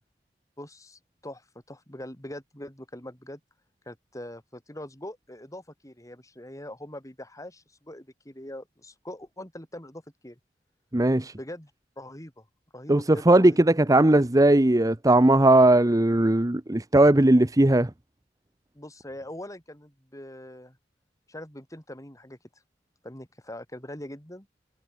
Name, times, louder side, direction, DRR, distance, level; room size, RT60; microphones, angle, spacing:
voice 1, 0.6-3.4 3.9-10.4 11.3-11.7 12.0-12.5 12.7-13.6 18.7-20.8 21.3-22.4 23.0-24.5, left 1 dB, 20° left, 4.6 m, -42 dB
voice 2, 10.9-11.3 12.9-17.9, right 1 dB, 20° right, 0.8 m, -18 dB
head